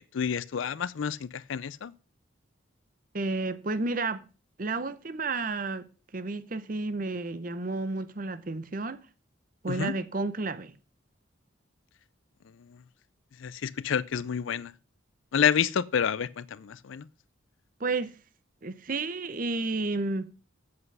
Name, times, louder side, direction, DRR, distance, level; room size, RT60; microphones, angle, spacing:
voice 1, 0.0-1.9 9.7-9.9 13.4-14.7 15.3-17.1, left 7 dB, 75° left, 0.4 m, -29 dB
voice 2, 3.1-4.2 4.6-5.9 6.1-9.0 9.6-10.7 17.8-18.1 18.6-20.3, right 3 dB, 40° right, 0.7 m, -31 dB
7.9 x 7.7 x 5.5 m
head